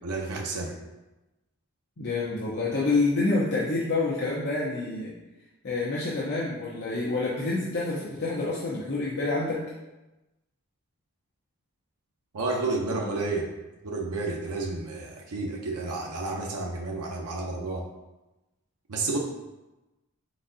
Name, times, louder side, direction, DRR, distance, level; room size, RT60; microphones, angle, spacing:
voice 1, 0.0-0.8 12.3-13.5 13.8-17.8 18.9-19.2, right 3 dB, 80° right, 0 dB, 0.6 m, -31 dB
voice 2, 2.0-5.1 5.6-9.6, left 3 dB, 50° left, -7 dB, 0.7 m, -27 dB
4.3 x 4.0 x 2.6 m, 1.0 s
head